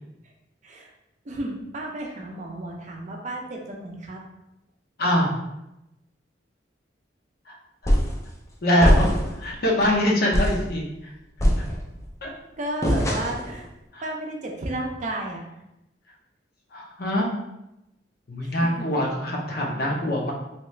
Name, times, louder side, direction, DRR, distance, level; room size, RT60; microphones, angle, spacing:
voice 1, 1.3-4.2 12.6-13.7 14.0-15.4 18.4-18.9 20.0-20.1, right 1 dB, 40° right, 1 dB, 0.5 m, -33 dB
voice 2, 5.0-5.3 7.5-7.6 8.6-9.1 9.3-11.1 12.2-12.3 13.9-14.1 16.7-17.3 18.3-20.3, equal, 55° left, -1 dB, 0.7 m, -23 dB
sound 1, 7.9-8.2 8.8-9.4 9.8-9.9 10.3-10.7 11.4-12.1 12.8-13.5, equal, 15° left, 0.4 m, -21 dB
2.8 x 2.4 x 3.1 m, 0.90 s
head